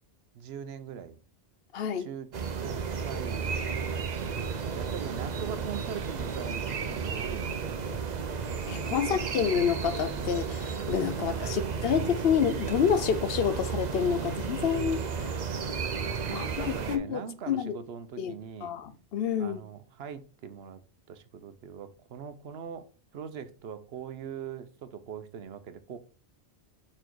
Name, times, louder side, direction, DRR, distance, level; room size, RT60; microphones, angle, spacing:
voice 1, 0.3-1.2 2.0-2.3 2.6-7.7 8.9-9.2 11.2-11.7 16.2-18.7 19.4-20.8 21.1-22.9 23.1-26.0, right 7 dB, 70° right, 0.9 m, -42 dB
voice 2, 1.7-2.1 8.7-15.4 16.3-17.8 18.2-18.3 18.6-19.6, left 8 dB, 65° left, 0.8 m, -28 dB
sound 1, 2.3-17.0, right 6 dB, 45° right, 0.7 m, -33 dB
5.4 x 4.4 x 4.5 m
omnidirectional pair, 1.1 m